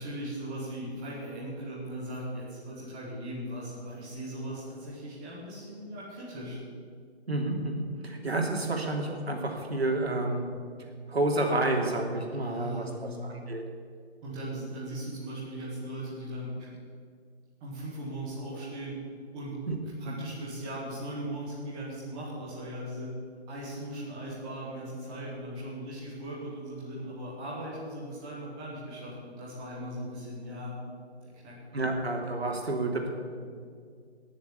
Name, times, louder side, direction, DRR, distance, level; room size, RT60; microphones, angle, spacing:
voice 1, 0.0-6.6 12.4-13.3 14.2-16.5 17.6-19.0 19.3-19.6 20.0-23.1 23.5-30.8 31.2-31.6, right 1 dB, 5° right, -8 dB, 1.1 m, -38 dB
voice 2, 7.3-10.4 11.1-12.8 13.2-13.6 19.7-19.8 20.0-20.2 31.7-33.1, right 2 dB, 70° right, 1 dB, 3.2 m, -29 dB
17.5 x 7.2 x 8.5 m, 2.1 s
hypercardioid pair, 170°, 33 cm